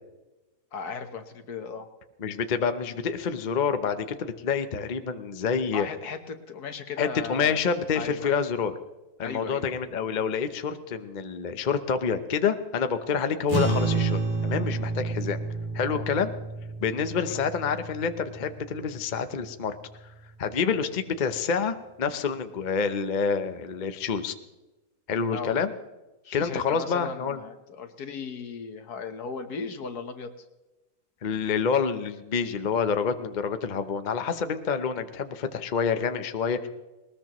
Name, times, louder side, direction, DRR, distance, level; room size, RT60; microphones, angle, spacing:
voice 1, 0.7-1.9 5.7-7.6 7.9-8.3 9.2-9.7 15.8-16.1 16.9-17.4 25.3-25.6 26.2-30.4, left 5 dB, 70° left, 7 dB, 1.7 m, -37 dB
voice 2, 2.2-5.9 7.0-8.7 9.2-15.4 15.7-16.3 16.8-19.8 20.4-24.3 25.1-25.7 26.3-27.4 31.2-36.7, left 6 dB, 40° left, 9 dB, 0.7 m, -27 dB
sound 1, 13.5-20.1, right 4 dB, 45° right, 3.0 m, -30 dB
20.0 x 20.0 x 3.1 m, 1.1 s
omnidirectional pair, 1.7 m